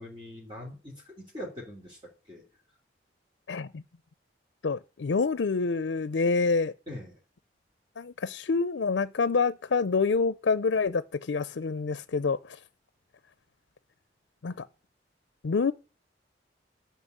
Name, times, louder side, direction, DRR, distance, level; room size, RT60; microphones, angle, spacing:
voice 1, 0.0-2.0 2.3-2.5 6.9-7.2, left 1 dB, 30° right, 3.1 m, -42 dB
voice 2, 3.5-3.8 4.6-6.7 8.0-12.6 14.4-14.7 15.4-15.7, left 4 dB, 85° left, 0.5 m, -27 dB
11.0 x 5.8 x 8.2 m
head